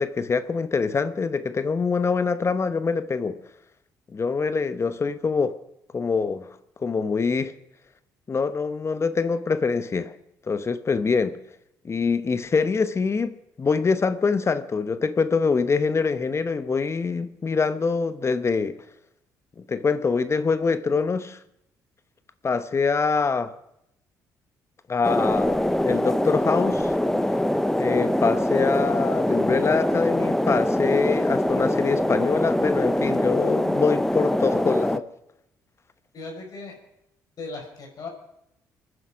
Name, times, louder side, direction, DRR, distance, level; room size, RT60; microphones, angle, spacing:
voice 1, 0.0-3.4 4.1-5.6 5.9-7.5 8.3-10.2 10.5-11.4 11.8-18.8 19.6-21.4 22.4-23.6 24.9-27.0 27.8-35.1, left 4 dB, 35° left, 1.0 m, -24 dB
sound 1, 25.0-35.0, left 1 dB, 5° left, 0.8 m, -23 dB
voice 2, 36.1-36.8 37.4-38.1, left 3 dB, 55° left, 5.5 m, -37 dB
27.0 x 9.9 x 5.1 m
supercardioid pair, 60°, 8 cm